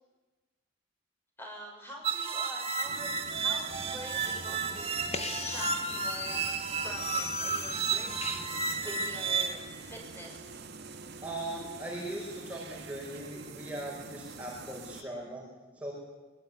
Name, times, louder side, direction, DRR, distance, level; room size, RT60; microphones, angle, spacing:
voice 1, 1.4-4.9 5.4-6.4 6.8-10.6, right 1 dB, 10° left, 0 dB, 6.8 m, -45 dB
sound 1, 2.0-9.5, right 5 dB, 30° right, 2.7 m, -32 dB
sound 2, 2.8-15.0, right 4 dB, 50° right, 2.5 m, -46 dB
sound 3, 3.7-9.1, left 6 dB, 30° left, 1.4 m, -41 dB
voice 2, 11.2-15.4 15.7-15.9, right 1 dB, 5° right, -3 dB, 5.5 m, -39 dB
24.5 x 22.5 x 9.7 m, 1.2 s
head